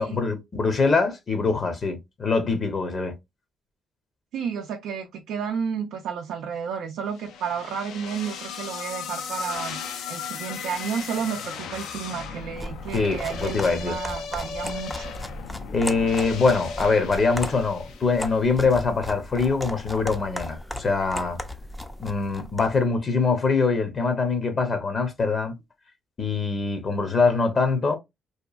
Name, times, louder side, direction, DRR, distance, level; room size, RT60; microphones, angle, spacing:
voice 1, 0.0-3.1 12.9-14.0 15.7-21.4 22.0-25.5 26.2-28.0, left 4 dB, 40° left, 0.7 m, -23 dB
voice 2, 4.3-15.1, right 7 dB, 85° right, 0.4 m, -32 dB
sound 1, 7.2-18.4, left 6 dB, 80° left, 0.4 m, -36 dB
sound 2, 12.4-22.8, left 1 dB, 5° left, 0.4 m, -36 dB
2.9 x 2.3 x 2.3 m
cardioid pair, 90°, 0 cm